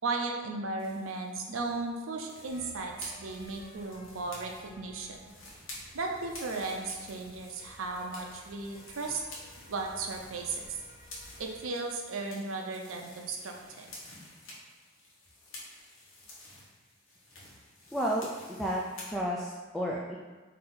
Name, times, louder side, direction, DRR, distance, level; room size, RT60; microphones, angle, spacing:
voice 1, 0.0-5.2 5.9-9.2 9.7-10.6 11.4-13.9, right 3 dB, 90° right, 2 dB, 0.6 m, -35 dB
sound 1, 0.8-19.1, left 2 dB, 80° left, 1.1 m, -50 dB
sound 2, 2.5-11.7, equal, 15° right, 1.2 m, -55 dB
voice 2, 17.9-20.2, equal, ahead, -4 dB, 0.3 m, -32 dB
4.0 x 2.7 x 3.9 m, 1.3 s
head